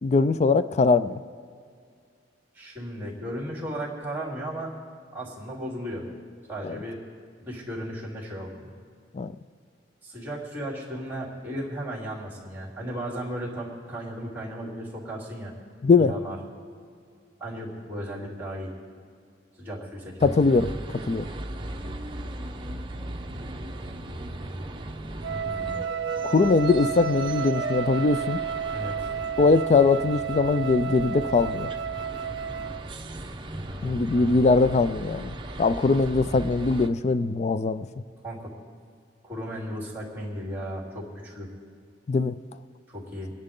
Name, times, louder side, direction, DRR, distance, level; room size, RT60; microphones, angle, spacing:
voice 1, 0.0-1.2 6.6-6.8 9.1-9.4 15.8-16.1 20.2-20.8 21.1-21.3 26.2-28.4 29.4-31.7 33.8-37.9 42.1-42.4, left 4 dB, 35° left, 13 dB, 0.4 m, -21 dB
voice 2, 2.5-4.7 5.1-6.1 6.5-7.0 7.4-8.7 10.0-15.5 16.0-16.4 17.4-18.7 19.6-20.3 28.7-29.1 33.5-34.4 38.2-38.5 39.2-41.5 42.9-43.3, equal, 10° right, -3 dB, 3.4 m, -35 dB
sound 1, 20.2-36.9, right 1 dB, 25° right, 0.9 m, -37 dB
Wind instrument woodwind instrument, 25.2-32.9, right 7 dB, 70° right, 0.3 m, -32 dB
26.0 x 10.5 x 3.8 m, 2.1 s
head